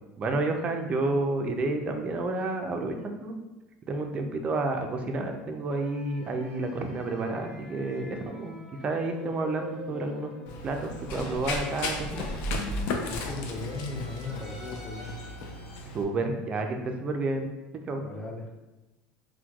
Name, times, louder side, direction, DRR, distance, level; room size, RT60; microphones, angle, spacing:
voice 1, 0.2-3.3 3.9-8.6 8.8-10.3 10.6-12.3 15.9-17.5 17.9-18.1, right 2 dB, 30° right, 4 dB, 0.4 m, -30 dB
sound 1, 5.7-12.8 13.4-15.8, equal, ahead, 1.5 m, -47 dB
Run, 10.5-16.0, left 3 dB, 65° left, 0.4 m, -36 dB
sound 2, 11.1-13.8 14.3-14.4, right 1 dB, 45° left, 0.9 m, -36 dB
voice 2, 13.1-15.2 18.0-18.5, left 3 dB, 20° left, 1 dB, 0.5 m, -37 dB
4.4 x 2.2 x 2.3 m, 1.1 s
supercardioid pair, 110°, 4 cm